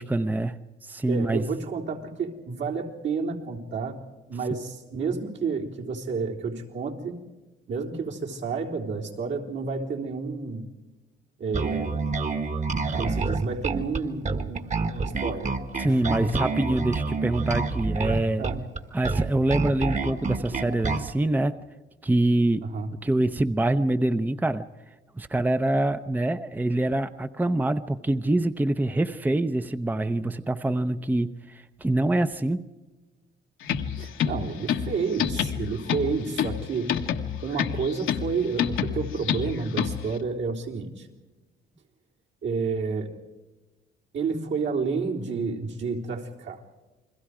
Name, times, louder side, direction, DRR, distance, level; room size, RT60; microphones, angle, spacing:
voice 1, 0.0-1.4 15.8-18.4 18.9-21.6 22.0-22.7 23.0-24.7 25.2-32.7, right 1 dB, 10° right, 10 dB, 0.7 m, -25 dB
voice 2, 1.1-4.0 4.3-7.2 7.7-10.7 11.4-12.1 12.9-15.5 15.8-16.3 18.4-18.6 22.6-22.9 34.0-37.0 37.4-41.1 42.4-43.1 44.1-46.6, right 4 dB, 70° right, -1 dB, 3.9 m, -30 dB
Bass guitar, 11.5-21.1, right 4 dB, 35° right, 1.6 m, -28 dB
sound 1, 33.6-40.2, left 8 dB, 80° left, 1.5 m, -29 dB
29.0 x 21.5 x 4.9 m, 1.2 s
cardioid pair, 90°, 20 cm